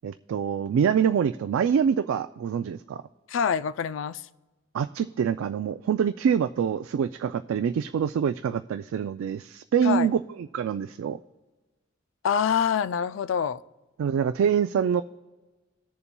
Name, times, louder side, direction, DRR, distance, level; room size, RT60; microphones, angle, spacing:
voice 1, 0.0-3.0 4.7-11.2 14.0-15.0, right 7 dB, 90° right, 10 dB, 0.3 m, -25 dB
voice 2, 3.3-4.2 9.8-10.1 12.2-13.6, left 7 dB, 70° left, 15 dB, 0.3 m, -25 dB
19.0 x 6.9 x 2.2 m, 1.2 s
head